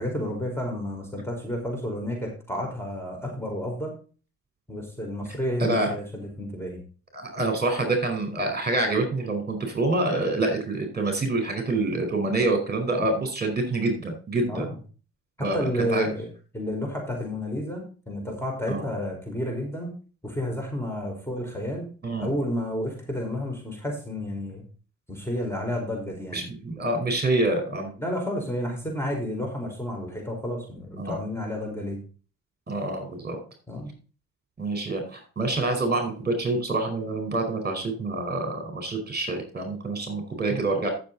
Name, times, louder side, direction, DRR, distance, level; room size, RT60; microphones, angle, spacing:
voice 1, 0.0-3.9 4.7-6.8 14.5-14.8 15.4-16.3 16.5-19.9 20.2-21.9 22.2-24.6 25.1-26.4 28.0-32.0 33.7-33.9, equal, 5° left, 1 dB, 5.1 m, -31 dB
voice 2, 5.6-5.9 7.1-14.6 15.4-16.1 18.7-18.8 22.0-22.3 26.3-27.9 31.0-31.1 32.7-33.4 34.6-40.9, right 2 dB, 30° right, 5 dB, 4.8 m, -26 dB
13.5 x 7.3 x 4.1 m, 0.36 s
supercardioid pair, 55°, 34 cm